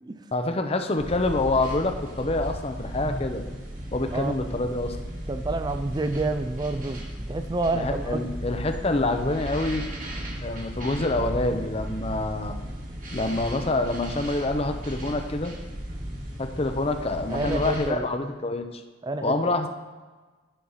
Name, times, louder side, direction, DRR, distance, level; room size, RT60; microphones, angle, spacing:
voice 1, 0.3-3.4 3.9-5.0 7.7-9.9 10.4-12.6 13.1-15.5 16.4-18.8 19.2-19.7, left 2 dB, 30° left, 7 dB, 0.7 m, -26 dB
sound 1, 1.0-17.9, equal, 45° right, 1.6 m, -35 dB
voice 2, 5.3-8.2 17.3-18.1 19.0-19.5, right 2 dB, 20° right, 9 dB, 0.4 m, -29 dB
10.0 x 4.6 x 5.6 m, 1.3 s
head